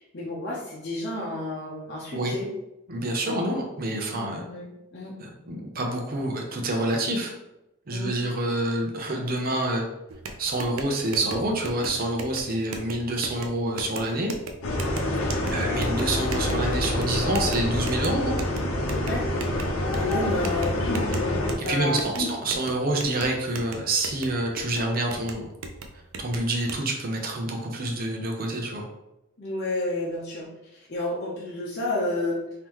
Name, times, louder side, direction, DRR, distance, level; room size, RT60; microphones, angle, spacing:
voice 1, 0.1-2.5 3.2-3.4 4.2-5.1 7.9-8.1 15.0-15.3 18.9-19.3 19.9-21.1 21.6-22.3 29.4-32.4, left 2 dB, 55° left, -5 dB, 0.8 m, -31 dB
voice 2, 2.9-4.4 5.2-7.3 7.9-9.8 10.4-14.3 15.5-18.3 21.6-25.5 26.2-28.9, right 1 dB, 45° right, 1 dB, 0.7 m, -27 dB
sound 1, 10.1-26.8, right 3 dB, 85° right, 0.5 m, -39 dB
sound 2, 14.6-21.5, left 1 dB, 90° left, 0.7 m, -27 dB
3.7 x 2.8 x 3.0 m, 0.90 s
head